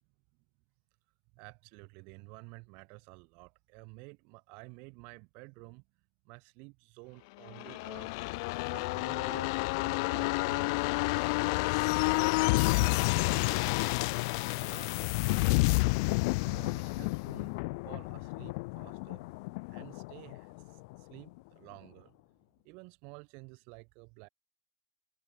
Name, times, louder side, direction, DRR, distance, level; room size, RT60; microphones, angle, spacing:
voice 1, 1.3-5.9 6.2-8.1 8.7-10.9 11.4-12.1 12.6-14.2 14.5-15.8 16.4-17.5 17.8-19.3 19.7-22.2 22.6-24.3, right 32 dB, 75° right, 6.4 m, -52 dB
sound 1, 7.5-21.0 21.3-21.4, left 28 dB, 85° left, 0.8 m, -30 dB
cardioid pair, 130°, 2 cm